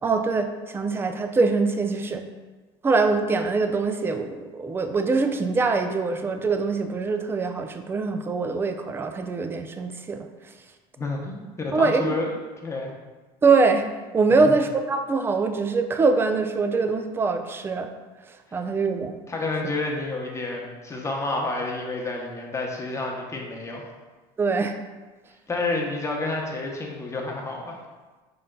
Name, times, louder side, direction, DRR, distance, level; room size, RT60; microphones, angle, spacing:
voice 1, 0.0-2.2 2.8-10.3 11.7-12.2 13.4-13.8 14.1-17.9 18.5-19.2 24.4-24.7, right 4 dB, 15° right, 7 dB, 0.3 m, -23 dB
voice 2, 11.0-12.3 12.6-12.9 14.3-14.5 18.5-18.6 19.3-23.9 25.5-27.8, left 2 dB, 20° left, -1 dB, 0.8 m, -29 dB
5.2 x 3.7 x 2.2 m, 1.3 s
supercardioid pair, 105°, 14 cm